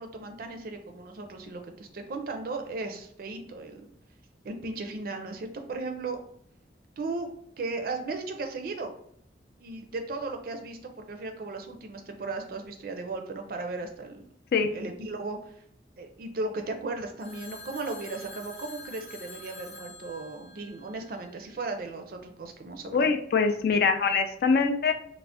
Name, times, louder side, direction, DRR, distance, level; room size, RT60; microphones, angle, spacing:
voice 1, 0.0-3.9 4.4-6.2 7.0-7.3 7.6-8.9 9.6-14.2 14.7-15.4 16.0-23.1, right 3 dB, 55° right, 5 dB, 0.4 m, -36 dB
Telephone, 17.2-21.4, left 1 dB, 35° left, 0.8 m, -46 dB
voice 2, 22.9-24.9, left 5 dB, 55° left, 6 dB, 0.3 m, -23 dB
2.5 x 2.0 x 3.4 m, 0.69 s
head